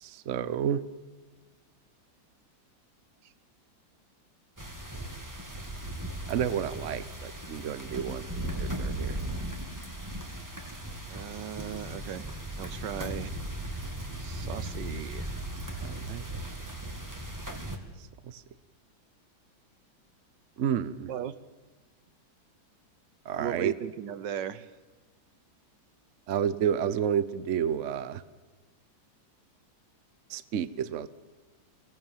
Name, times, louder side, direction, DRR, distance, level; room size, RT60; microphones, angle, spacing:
voice 1, 0.0-0.8 6.3-9.2 15.8-16.2 18.2-18.4 20.6-21.1 23.3-23.7 26.3-28.2 30.3-31.1, right 9 dB, 55° right, 15 dB, 0.9 m, -30 dB
sound 1, 4.6-17.8, right 1 dB, 10° right, 2.0 m, -37 dB
voice 2, 11.1-12.3 12.6-13.3 14.2-15.3 21.1-21.3 23.4-24.7, right 9 dB, 70° right, 15 dB, 1.4 m, -37 dB
24.0 x 17.5 x 7.3 m, 1.3 s
omnidirectional pair, 2.1 m